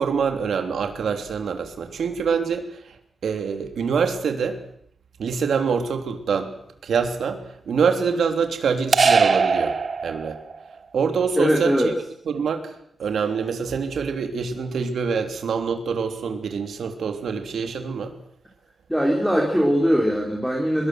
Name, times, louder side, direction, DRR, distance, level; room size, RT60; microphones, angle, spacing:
voice 1, 0.0-3.0 3.2-4.6 5.2-6.5 6.8-9.8 10.0-10.4 10.9-11.7 12.3-18.1, right 6 dB, 80° right, 6 dB, 3.3 m, -25 dB
sound 1, 8.9-10.6, right 5 dB, 40° right, 1.0 m, -20 dB
voice 2, 11.4-11.9 18.9-20.9, equal, ahead, -1 dB, 3.7 m, -20 dB
24.5 x 21.5 x 7.8 m, 0.68 s
wide cardioid pair, 180°, 0 cm